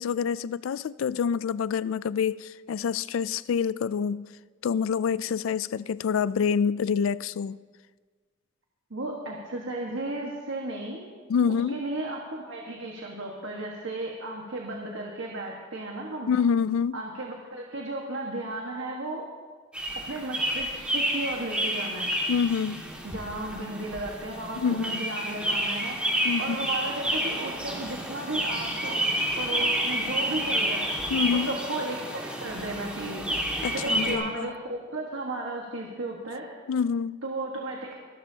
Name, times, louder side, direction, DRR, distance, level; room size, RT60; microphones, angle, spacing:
voice 1, 0.0-4.2 4.6-7.6 11.3-11.8 16.3-17.0 22.3-22.9 24.6-25.0 26.2-26.6 31.1-31.5 33.6-34.5 36.7-37.2, left 6 dB, 90° left, 0.3 m, -27 dB
voice 2, 8.9-11.0 11.5-16.3 16.9-19.3 20.1-22.1 23.0-26.0 26.4-29.0 29.4-30.9 31.3-33.3 33.7-36.5 37.2-38.0, right 2 dB, 75° right, 1.6 m, -34 dB
sound 1, 19.7-34.1, right 1 dB, 5° right, 2.0 m, -30 dB
24.5 x 12.0 x 2.9 m
head